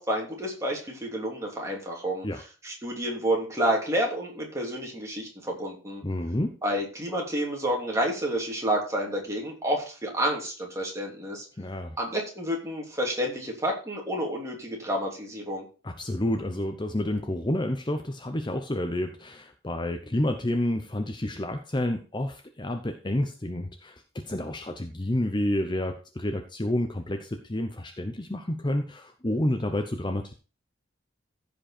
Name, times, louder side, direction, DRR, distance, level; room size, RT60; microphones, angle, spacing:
voice 1, 0.0-2.3 2.6-6.0 6.6-11.5 12.0-15.7, right 1 dB, 15° right, -1 dB, 3.1 m, -29 dB
voice 2, 6.0-6.6 11.6-12.0 15.8-30.3, left 1 dB, 25° left, 6 dB, 0.8 m, -29 dB
15.0 x 5.3 x 4.3 m, 0.35 s
head